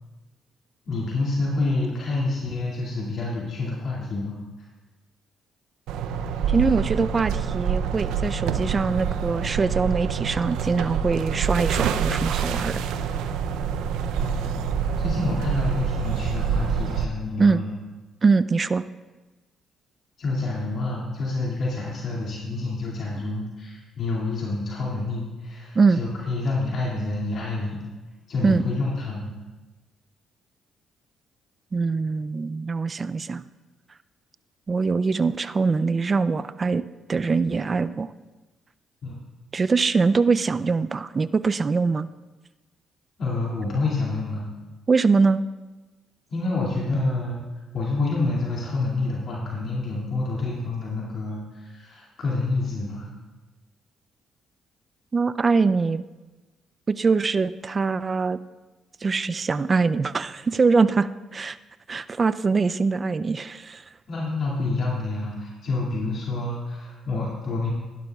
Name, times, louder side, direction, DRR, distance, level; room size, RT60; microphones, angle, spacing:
voice 1, 0.8-4.4 14.2-17.7 20.2-27.8 28.3-29.3 39.0-39.1 43.2-44.5 46.3-47.4 47.7-53.1 64.1-67.7, left 2 dB, 60° left, -4 dB, 2.5 m, -28 dB
sound 1, 5.9-17.0, right 7 dB, 85° right, 0.5 m, -26 dB
voice 2, 6.5-12.8 17.4-17.6 18.2-18.8 25.7-26.0 28.4-28.6 31.7-33.4 34.7-36.8 37.1-38.1 39.5-42.1 44.9-45.5 55.1-56.0 56.9-58.4 59.0-61.6 61.9-63.8, right 4 dB, 40° right, 14 dB, 0.4 m, -23 dB
16.5 x 11.5 x 2.4 m, 1.2 s
supercardioid pair, 65°, 0 cm